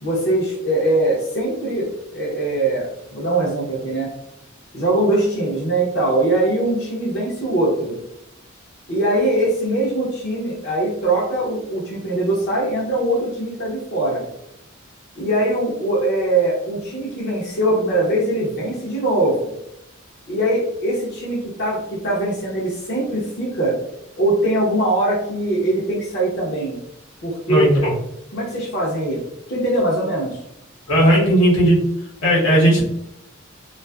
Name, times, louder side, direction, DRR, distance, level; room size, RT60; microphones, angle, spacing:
voice 1, 0.0-4.1 4.7-8.0 8.9-14.2 15.2-19.5 20.3-23.8 24.2-26.8 27.2-27.9 28.3-29.2 29.5-30.4, right 1 dB, 55° left, -5 dB, 0.7 m, -21 dB
voice 2, 27.5-27.9 30.9-31.8 32.2-32.8, right 1 dB, 85° left, -5 dB, 1.0 m, -15 dB
2.4 x 2.4 x 2.3 m, 0.81 s
head